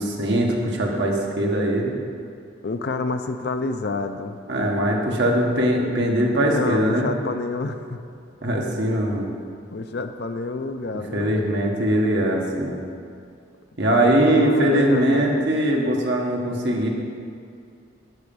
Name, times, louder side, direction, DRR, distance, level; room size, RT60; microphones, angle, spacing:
voice 1, 0.0-1.9 4.5-7.1 8.4-9.3 11.1-12.8 13.8-16.9, right 1 dB, 65° right, -1 dB, 1.4 m, -21 dB
voice 2, 2.6-4.4 6.5-8.0 9.7-11.4 14.0-15.5, left 3 dB, 55° left, 8 dB, 0.5 m, -29 dB
11.0 x 5.1 x 7.0 m, 2.4 s
head